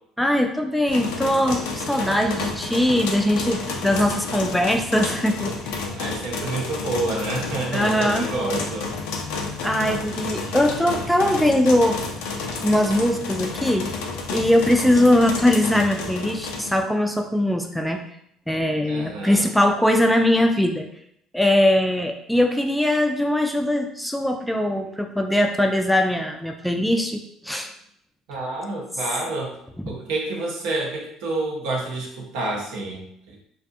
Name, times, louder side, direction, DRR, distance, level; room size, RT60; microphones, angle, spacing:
voice 1, 0.2-5.9 7.7-8.3 9.6-12.0 12.6-13.9 14.3-18.0 18.5-20.9 21.3-27.7 29.8-29.9, left 1 dB, ahead, 4 dB, 0.3 m, -21 dB
sound 1, 0.9-16.8, left 4 dB, 80° left, 0.4 m, -30 dB
voice 2, 6.0-8.9 18.9-19.4 24.6-24.9 27.5-27.6 28.3-29.5 29.9-33.4, right 2 dB, 80° right, -1 dB, 0.7 m, -29 dB
2.6 x 2.2 x 2.6 m, 0.72 s
supercardioid pair, 75°, 0 cm